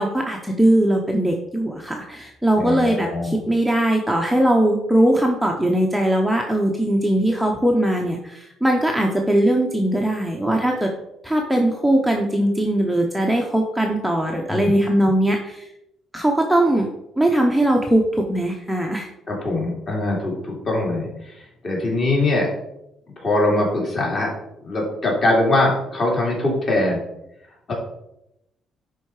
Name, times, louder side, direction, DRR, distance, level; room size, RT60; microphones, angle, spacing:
voice 1, 0.0-10.9 11.2-15.6 16.1-16.9 17.2-19.1, right 1 dB, ahead, 0 dB, 0.8 m, -20 dB
voice 2, 2.6-3.3 14.5-14.7 19.3-22.5 23.2-24.3 24.6-27.0 27.7-27.8, left 2 dB, 35° left, -2 dB, 3.1 m, -22 dB
10.0 x 4.5 x 4.8 m, 0.84 s
cardioid pair, 155°, 0 cm